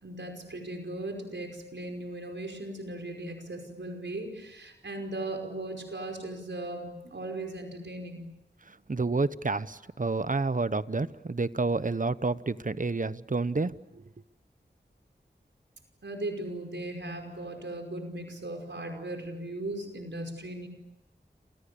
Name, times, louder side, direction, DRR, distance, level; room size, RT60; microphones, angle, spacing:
voice 1, 0.0-8.3 16.0-20.7, right 1 dB, 90° right, 4 dB, 5.3 m, -38 dB
voice 2, 8.7-14.0, right 3 dB, 45° right, 15 dB, 1.0 m, -29 dB
29.5 x 28.0 x 7.0 m, 0.93 s
wide cardioid pair, 55°, 18 cm